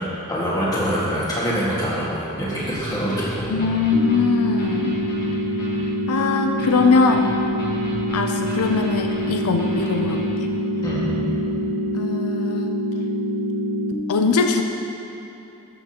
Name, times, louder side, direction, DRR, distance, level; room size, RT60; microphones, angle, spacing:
voice 1, 0.3-3.5 10.8-11.3, equal, 20° left, -8 dB, 1.7 m, -24 dB
sound 1, 2.6-10.5, right 1 dB, 40° left, 1.8 m, -34 dB
voice 2, 3.5-5.0 6.1-7.3 8.1-10.5 11.9-12.7 14.1-14.6, left 4 dB, 85° left, 4 dB, 0.5 m, -21 dB
sound 2, 3.9-13.9, equal, 65° right, 0.5 m, -25 dB
13.0 x 6.0 x 2.9 m, 3.0 s
head